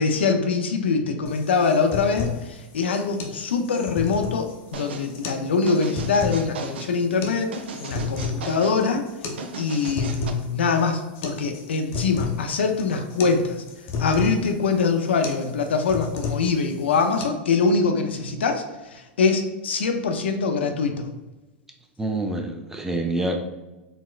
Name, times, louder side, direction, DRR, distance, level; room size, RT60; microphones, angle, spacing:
voice 1, 0.0-9.0 9.6-13.6 14.0-18.6 18.9-21.1, left 4 dB, 90° left, 5 dB, 0.4 m, -23 dB
sound 1, 1.2-17.2, left 6 dB, 45° left, 0.6 m, -33 dB
sound 2, 4.7-5.1 5.7-6.9 7.5-8.8 9.4-10.3, right 4 dB, 85° right, 0.4 m, -36 dB
voice 2, 22.0-23.4, right 2 dB, 5° right, 2 dB, 0.4 m, -26 dB
4.1 x 2.1 x 2.3 m, 1.1 s
hypercardioid pair, 110°, 6 cm